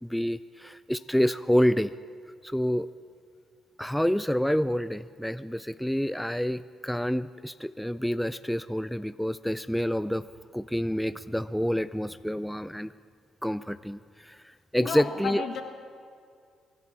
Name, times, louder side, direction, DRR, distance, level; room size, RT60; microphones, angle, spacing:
voice 1, 0.0-1.9 2.4-2.9 3.8-10.3 10.5-12.9 13.4-15.4, equal, 5° left, 14 dB, 0.3 m, -28 dB
voice 2, 14.8-15.6, left 5 dB, 65° left, 5 dB, 1.6 m, -32 dB
24.5 x 11.5 x 4.4 m, 2.2 s
cardioid pair, 90°, 0 cm